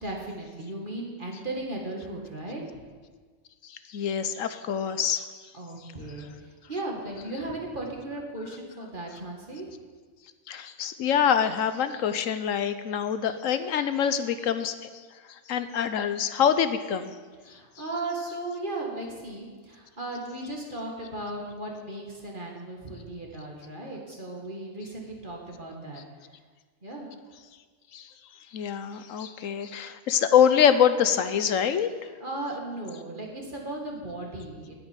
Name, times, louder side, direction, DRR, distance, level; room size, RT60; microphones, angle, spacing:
voice 1, 0.0-2.8 5.5-9.7 17.4-26.0 26.8-27.1 32.2-34.8, right 2 dB, 40° right, -1 dB, 2.4 m, -36 dB
voice 2, 3.7-5.3 10.5-14.9 15.3-17.1 27.9-28.1 28.5-31.9, left 8 dB, 85° left, 11 dB, 1.2 m, -25 dB
10.0 x 9.0 x 9.1 m, 1.5 s
omnidirectional pair, 1.3 m